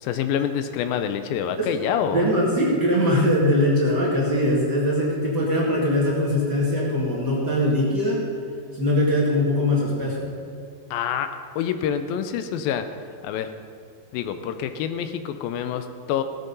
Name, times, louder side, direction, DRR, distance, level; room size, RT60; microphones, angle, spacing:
voice 1, 0.0-2.3 10.9-11.3 11.6-12.9 13.2-13.5 14.1-16.2, left 8 dB, 80° left, 9 dB, 2.4 m, -26 dB
voice 2, 2.1-8.2 8.7-10.3, left 1 dB, 35° right, -5 dB, 2.2 m, -21 dB
16.5 x 8.1 x 5.4 m, 2.3 s
omnidirectional pair, 4.2 m